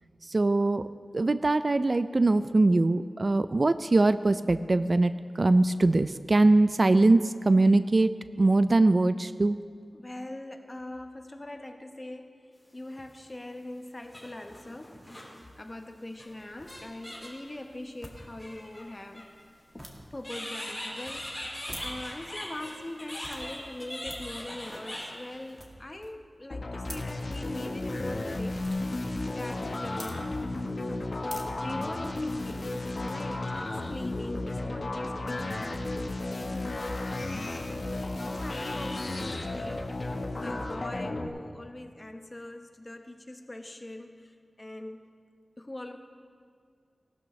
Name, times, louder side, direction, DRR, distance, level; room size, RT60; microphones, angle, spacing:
voice 1, 0.3-0.8 1.1-9.6, right 2 dB, 50° right, 12 dB, 0.3 m, -22 dB
voice 2, 9.9-15.1 15.6-19.3 19.7-29.1 29.3-30.3 31.4-35.9 36.3-45.0 45.6-46.0, left 1 dB, 30° left, 5 dB, 1.0 m, -42 dB
sound 1, 12.9-13.0 14.0-15.4 16.2-16.3 16.7-17.5 18.2-19.2 20.2-25.6, left 1 dB, 10° left, 3.9 m, -40 dB
sound 2, 16.1-32.6, equal, 10° right, 1.8 m, -51 dB
sound 3, 26.5-41.3, left 2 dB, 60° left, 1.1 m, -33 dB
18.0 x 12.5 x 3.1 m, 2.1 s
wide cardioid pair, 65°, 0 cm